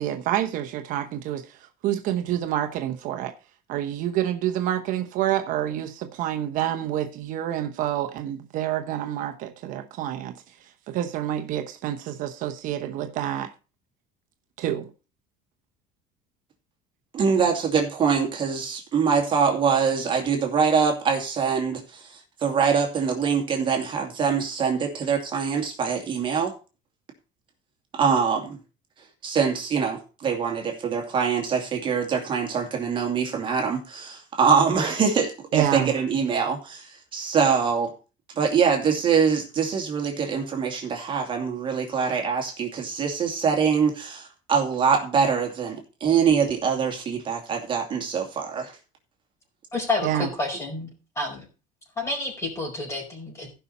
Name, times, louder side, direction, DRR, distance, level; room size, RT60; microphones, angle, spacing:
voice 1, 0.0-1.5 1.8-3.3 3.7-10.3 10.9-13.5 14.6-14.9 35.5-35.9 50.0-50.3, right 12 dB, 60° right, 1.0 m, -28 dB
voice 2, 17.1-22.1 22.4-26.5 27.9-28.6 29.2-36.9 37.1-37.9 38.4-48.7, right 6 dB, 30° right, 2.4 m, -24 dB
voice 3, 49.7-51.4 52.0-53.5, left 2 dB, 20° left, 4.8 m, -29 dB
15.5 x 5.8 x 4.2 m
cardioid pair, 145°, 16 cm